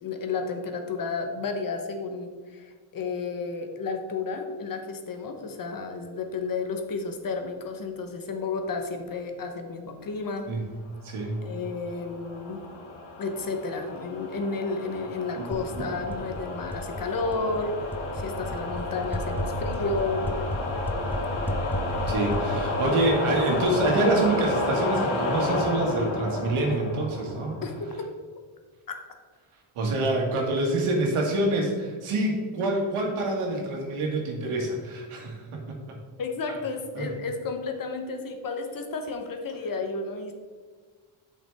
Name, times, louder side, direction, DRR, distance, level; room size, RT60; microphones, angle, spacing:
voice 1, 0.0-10.5 11.4-12.6 13.2-17.9 18.1-20.3 27.6-28.1 28.9-29.0 36.2-40.3, left 4 dB, 40° left, 5 dB, 1.0 m, -32 dB
voice 2, 11.0-11.4 15.4-15.9 22.1-27.6 29.8-36.0 37.0-37.1, right 2 dB, 75° right, 0 dB, 1.9 m, -26 dB
sound 1, 11.4-27.9, left 2 dB, 65° left, 1.6 m, -31 dB
sound 2, 15.5-24.2, left 1 dB, 5° left, 0.4 m, -34 dB
7.9 x 5.8 x 3.5 m, 1.5 s
cardioid pair, 110°, 50 cm